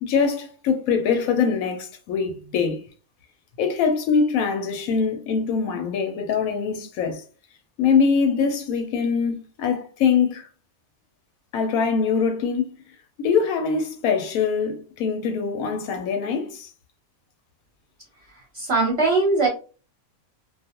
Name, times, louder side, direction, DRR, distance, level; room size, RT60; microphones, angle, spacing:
voice 1, 0.0-2.8 3.6-7.2 7.8-10.5 11.5-12.7 13.2-16.7, left 6 dB, 90° left, 1.1 m, -23 dB
voice 2, 18.5-19.5, right 3 dB, 55° right, 0.9 m, -20 dB
2.4 x 2.3 x 2.8 m
omnidirectional pair, 1.4 m